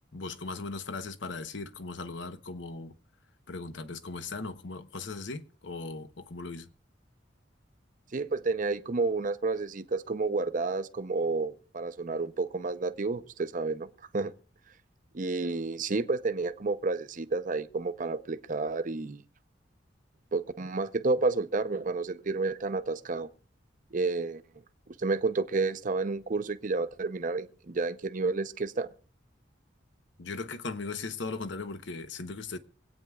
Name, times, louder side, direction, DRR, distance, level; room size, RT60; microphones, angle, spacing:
voice 1, 0.1-2.9 3.5-6.7 30.2-32.6, left 3 dB, 80° left, 0.9 m, -38 dB
voice 2, 8.1-13.9 14.1-14.3 15.1-19.2 20.3-23.3 23.9-24.4 25.0-28.9, right 3 dB, 45° right, 0.6 m, -30 dB
25.0 x 8.8 x 2.3 m
head